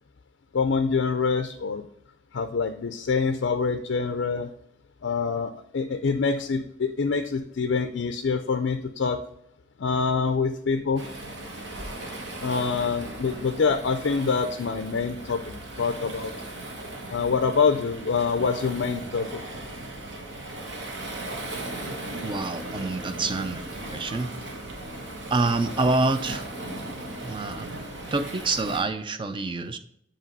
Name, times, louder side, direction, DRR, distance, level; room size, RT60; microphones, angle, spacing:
voice 1, 0.5-1.9 2.3-4.5 5.0-9.2 9.8-11.0 12.4-15.4 15.8-16.3 17.1-19.4, left 5 dB, 65° left, 7 dB, 0.4 m, -25 dB
Waves surf, 11.0-28.8, right 1 dB, 60° right, 1.2 m, -37 dB
voice 2, 22.2-23.6 23.9-24.3 25.3-26.5 27.2-27.7 28.1-29.8, right 3 dB, 25° right, 10 dB, 0.4 m, -26 dB
7.4 x 2.9 x 5.3 m, 0.72 s
head